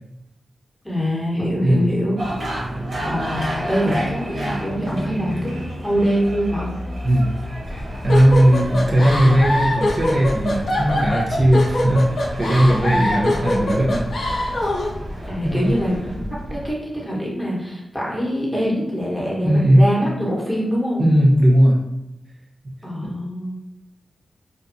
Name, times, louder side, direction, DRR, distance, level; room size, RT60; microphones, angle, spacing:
voice 1, 0.8-2.2 3.1-5.5 5.8-6.7 12.9-13.5 15.3-16.2 16.5-21.0 22.8-23.6, equal, 10° left, -5 dB, 1.1 m, -24 dB
sound 1, 2.2-16.2, equal, 75° right, 1.1 m, -31 dB
sound 2, 7.6-16.7, equal, 40° left, 0.8 m, -33 dB
voice 2, 7.7-12.1 12.4-14.1 14.4-14.5 15.4-15.7 19.4-19.9 21.0-21.8 23.0-23.1, equal, 55° right, -4 dB, 0.7 m, -17 dB
sound 3, 8.1-14.9, left 1 dB, 70° left, 0.5 m, -23 dB
2.5 x 2.3 x 2.6 m, 0.86 s
cardioid pair, 45°, 0 cm